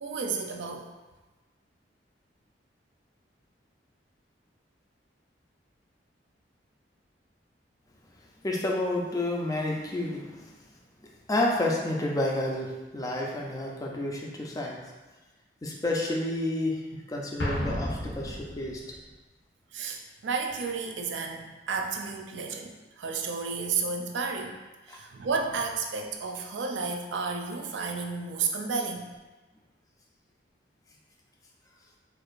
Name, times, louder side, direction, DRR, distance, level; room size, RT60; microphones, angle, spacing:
voice 1, 0.0-0.8 19.7-24.6 24.9-29.1, right 4 dB, 75° right, 3 dB, 0.4 m, -32 dB
voice 2, 8.4-10.4 11.3-14.8 15.6-18.8 24.9-25.0, left 1 dB, 20° left, -1 dB, 0.5 m, -30 dB
Explosion, 17.4-19.0, equal, 85° left, 0.8 m, -33 dB
4.5 x 2.4 x 2.5 m, 1.1 s
head